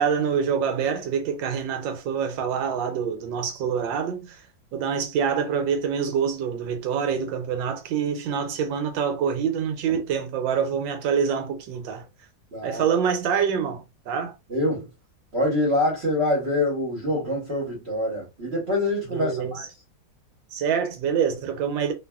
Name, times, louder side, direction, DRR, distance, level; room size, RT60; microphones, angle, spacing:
voice 1, 0.0-4.4 4.7-12.0 12.6-14.3 19.1-19.6 20.5-21.9, right 7 dB, 80° right, 1.3 m, -26 dB
voice 2, 12.5-12.8 14.5-14.9 15.3-19.7, left 1 dB, 45° right, 1.0 m, -25 dB
2.8 x 2.6 x 2.2 m
omnidirectional pair, 2.0 m